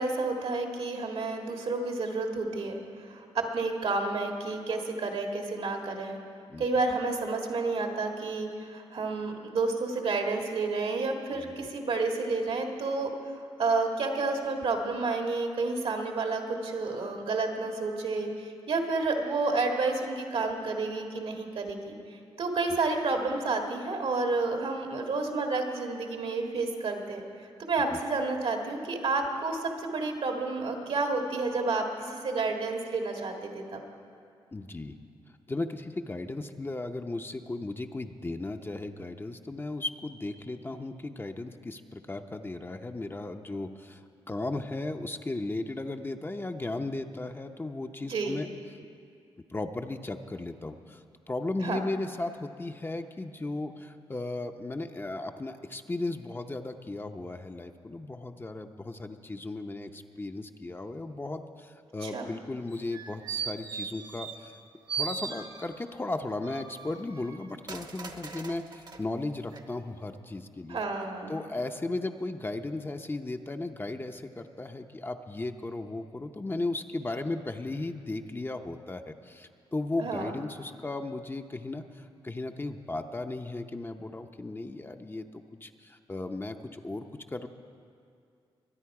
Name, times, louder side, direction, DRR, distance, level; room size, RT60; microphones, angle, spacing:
voice 1, 0.0-6.2 6.6-27.2 27.6-33.8 48.1-48.4 51.6-51.8 62.0-62.3 70.7-71.4 80.0-80.3, right 3 dB, 70° right, 2 dB, 1.8 m, -30 dB
voice 2, 11.4-11.7 27.9-28.0 34.5-34.9 35.5-48.5 49.5-51.0 51.3-64.5 64.9-70.8 71.3-85.2 85.6-87.1 87.3-87.5, left 2 dB, 20° left, 6 dB, 0.7 m, -36 dB
sound 1, 62.7-64.6 64.9-65.9 66.4-69.0 69.5-69.6, right 6 dB, 45° right, 1.0 m, -38 dB
23.0 x 9.6 x 4.8 m, 2.3 s
cardioid pair, 85°, 10 cm